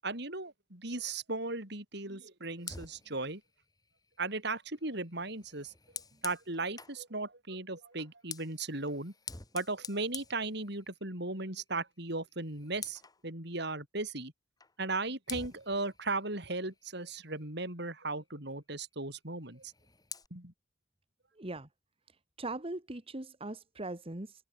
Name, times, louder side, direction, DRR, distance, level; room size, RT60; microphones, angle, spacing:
voice 1, 0.0-3.4 4.2-5.7 6.2-9.1 9.5-14.3 14.8-19.7 20.3-20.5, right 3 dB, 60° right, 7.3 m, -37 dB
Fire, 2.6-7.0 7.9-11.2 11.5-11.8 12.1-13.2 14.6-14.7 15.3-17.6 19.5-20.3, left 5 dB, 20° left, 3.4 m, -48 dB
voice 2, 21.4-21.7 22.4-24.4, right 2 dB, 30° right, 1.6 m, -40 dB
head